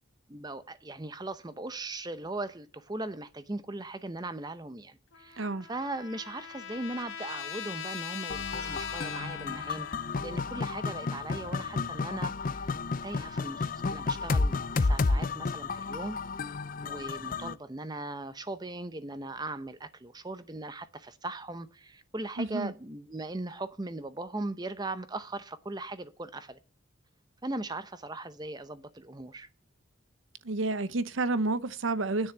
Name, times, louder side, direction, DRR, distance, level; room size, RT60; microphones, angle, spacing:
voice 1, 0.3-9.9 10.2-12.7 13.0-26.6 27.4-29.5, right 2 dB, 20° right, 0.7 m, -39 dB
Trumpet, 5.1-10.3, left 8 dB, 75° left, 2.0 m, -41 dB
Intro Synth, 8.3-17.5, left 3 dB, 40° left, 0.5 m, -31 dB
voice 2, 22.4-22.7 30.4-32.3, right 2 dB, 70° right, 0.8 m, -30 dB
9.7 x 7.1 x 7.3 m
head